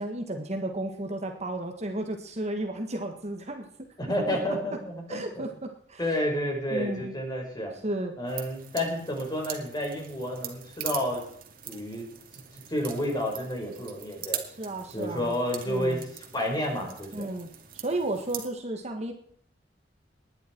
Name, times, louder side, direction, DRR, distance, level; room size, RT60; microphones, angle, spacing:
voice 1, 0.0-3.7 4.3-4.4 5.1-6.0 6.7-7.2 7.8-8.2 14.6-15.4 15.7-16.0 17.1-19.1, right 1 dB, 40° right, 4 dB, 1.7 m, -33 dB
voice 2, 4.0-5.5 6.0-7.7 8.2-11.2 11.7-12.1 12.3-12.4 12.7-14.4 14.9-17.3, equal, 25° left, 1 dB, 5.1 m, -30 dB
sound 1, 8.3-18.5, right 10 dB, 55° right, 2.4 m, -42 dB
20.0 x 11.0 x 4.6 m, 0.63 s
head